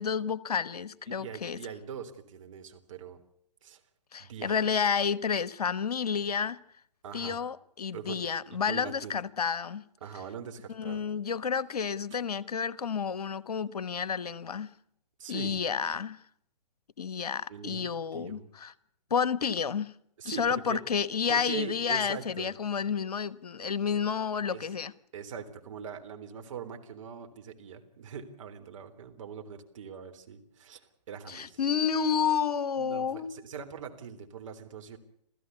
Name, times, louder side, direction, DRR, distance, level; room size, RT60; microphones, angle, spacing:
voice 1, 0.0-1.6 4.1-6.6 7.1-9.8 10.7-14.7 15.3-16.2 17.0-18.7 19.1-19.9 20.2-24.9 31.3-33.4, left 6 dB, 65° left, 1.2 m, -30 dB
voice 2, 1.1-3.2 3.6-3.8 4.2-4.7 7.0-7.4 7.9-8.2 8.5-9.2 10.0-11.1 15.2-15.6 17.5-18.5 20.2-20.8 21.3-22.5 24.5-24.7 25.1-31.6 32.8-35.0, right 7 dB, 50° right, 3.6 m, -42 dB
28.0 x 15.5 x 8.3 m
figure-of-eight pair, 130°, 21 cm